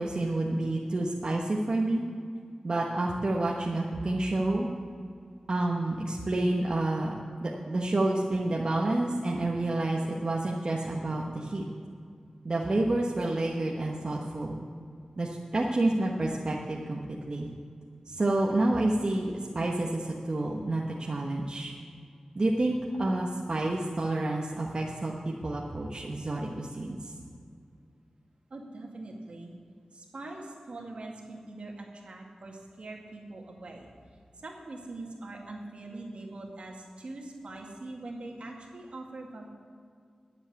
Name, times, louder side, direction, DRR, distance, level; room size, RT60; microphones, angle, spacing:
voice 1, 0.0-2.0 2.6-4.7 5.5-7.1 7.4-11.6 12.4-14.6 15.2-17.0 17.3-17.5 18.1-21.7 22.3-27.1, right 2 dB, 45° right, -2 dB, 1.2 m, -29 dB
voice 2, 28.5-29.5 29.9-33.9 34.4-39.5, right 2 dB, 65° right, 0 dB, 2.0 m, -43 dB
10.5 x 7.6 x 9.4 m, 2.3 s
wide cardioid pair, 95°, 2 cm